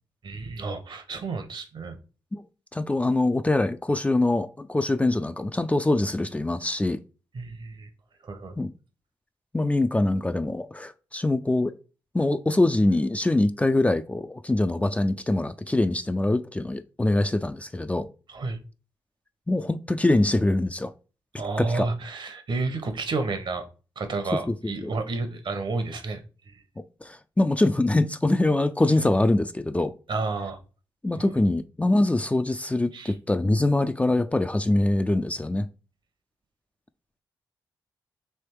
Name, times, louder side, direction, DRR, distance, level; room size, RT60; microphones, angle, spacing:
voice 1, 0.2-2.0 7.3-7.9 8.2-8.6 18.3-18.6 21.4-23.7 24.0-26.6 30.1-30.6 31.1-31.2 32.9-33.1, right 3 dB, 60° right, 1.1 m, -31 dB
voice 2, 2.7-7.0 8.6-8.7 9.5-11.7 12.1-18.1 19.5-20.9 21.6-21.9 24.5-24.9 26.8-29.9 31.0-35.7, left 2 dB, 15° left, 0.4 m, -24 dB
3.4 x 3.1 x 4.6 m
hypercardioid pair, 40°, 9 cm